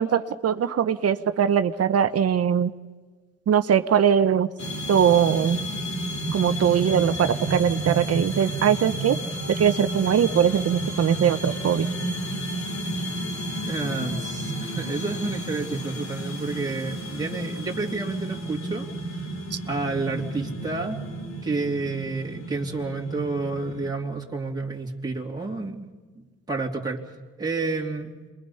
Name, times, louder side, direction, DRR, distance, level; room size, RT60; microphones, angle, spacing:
voice 1, 0.0-2.7 3.5-4.5 4.9-5.6 6.3-9.2 9.5-11.9 19.5-19.6, right 8 dB, 55° right, 10 dB, 1.0 m, -21 dB
sound 1, 4.6-23.9, right 1 dB, 60° left, 3.1 m, -32 dB
voice 2, 13.7-19.3 19.7-21.0 21.4-25.9 26.1-27.0 27.4-28.1, right 3 dB, 15° right, -2 dB, 3.0 m, -30 dB
27.5 x 22.5 x 5.6 m, 1.4 s
cardioid pair, 90°, 30 cm